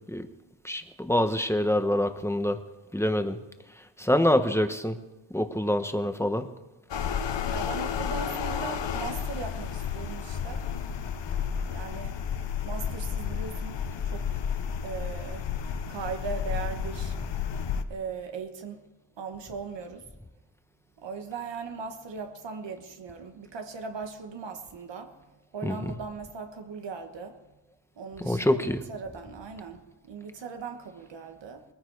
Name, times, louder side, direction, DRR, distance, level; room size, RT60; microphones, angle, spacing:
voice 1, 0.6-2.6 2.9-3.4 4.0-5.0 5.3-6.5 25.6-26.0 28.2-28.8, left 1 dB, 5° left, 1.2 m, -25 dB
sound 1, 6.9-17.8, left 7 dB, 80° left, 1.0 m, -32 dB
voice 2, 7.5-10.6 11.7-12.2 12.6-13.8 14.1-14.5 14.8-15.5 15.9-17.1 17.9-18.8 19.2-20.0 21.0-25.2 25.5-27.4 28.0-31.6, right 5 dB, 85° right, 1.5 m, -38 dB
20.5 x 14.5 x 4.8 m
cardioid pair, 80°, 42 cm